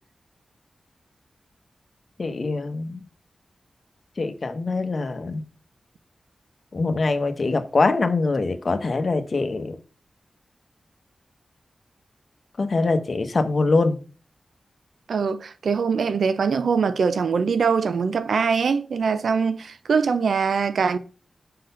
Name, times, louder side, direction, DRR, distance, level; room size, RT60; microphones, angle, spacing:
voice 1, 2.2-3.0 4.2-5.4 6.7-9.8 12.6-14.0, left 3 dB, 55° left, 1.0 m, -23 dB
voice 2, 15.1-21.0, right 5 dB, 85° right, 0.5 m, -22 dB
6.7 x 4.0 x 5.5 m
cardioid pair, 60°, 0 cm